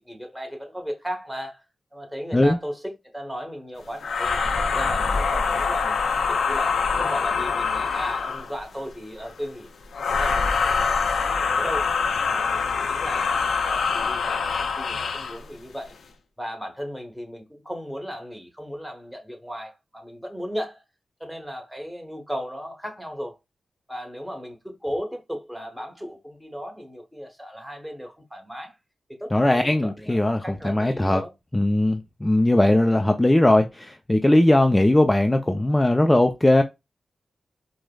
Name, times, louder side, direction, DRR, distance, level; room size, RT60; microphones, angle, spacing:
voice 1, 0.0-1.6 1.9-4.4 4.7-9.7 10.0-11.9 12.2-15.9 16.4-20.8 21.2-23.4 23.9-28.7 29.2-31.3 34.6-34.8, equal, 5° right, 1.1 m, -36 dB
sound 1, 4.0-8.6 9.9-15.4, left 5 dB, 80° left, 0.5 m, -24 dB
voice 2, 29.3-31.2 31.5-36.6, left 1 dB, 15° left, 0.4 m, -19 dB
4.8 x 2.1 x 2.2 m
cardioid pair, 70°, 0 cm